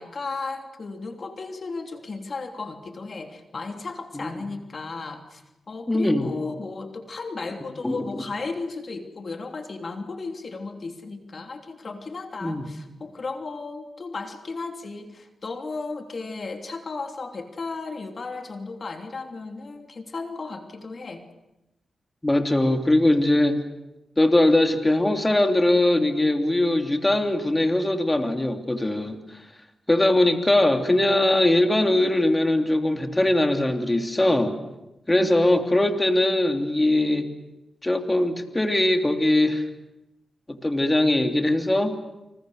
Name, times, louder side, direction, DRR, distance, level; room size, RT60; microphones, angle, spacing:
voice 1, 0.0-21.3 35.2-35.5, left 3 dB, 55° left, 4 dB, 3.2 m, -35 dB
voice 2, 5.9-6.3 7.8-8.2 12.4-12.6 22.2-23.6 24.2-29.4 29.9-34.5 35.1-37.3 37.8-39.7 40.5-42.0, left 1 dB, 20° left, 5 dB, 3.0 m, -21 dB
29.5 x 26.5 x 6.6 m, 0.94 s
cardioid pair, 55°, 0 cm